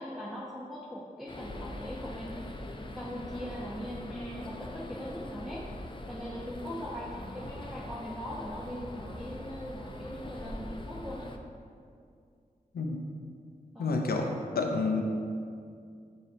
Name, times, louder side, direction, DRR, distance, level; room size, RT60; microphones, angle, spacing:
voice 1, 0.0-5.7 6.1-11.3 13.7-14.0, equal, ahead, -7 dB, 0.9 m, -40 dB
sound 1, 1.3-11.4, left 1 dB, 30° left, 0.6 m, -42 dB
voice 2, 13.8-15.0, left 3 dB, 75° left, 2 dB, 0.5 m, -29 dB
7.2 x 2.7 x 5.3 m, 2.3 s
cardioid pair, 40°, 16 cm